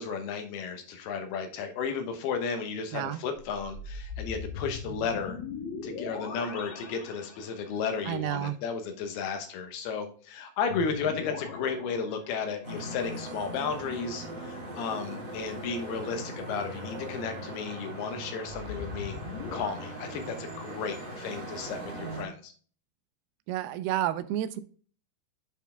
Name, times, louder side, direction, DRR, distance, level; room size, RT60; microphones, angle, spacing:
voice 1, 0.0-5.4 5.8-19.2 19.5-22.5, left 5 dB, 80° left, 6 dB, 3.0 m, -34 dB
sound 1, 3.4-7.9 10.7-12.8 18.4-19.7, left 5 dB, 60° left, 1.6 m, -40 dB
voice 2, 8.1-8.6 23.5-24.6, right 13 dB, 85° right, 11 dB, 2.5 m, -30 dB
sound 2, 12.6-22.2, right 1 dB, 30° right, 0.9 m, -40 dB
8.1 x 4.6 x 3.4 m, 0.42 s
omnidirectional pair, 4.5 m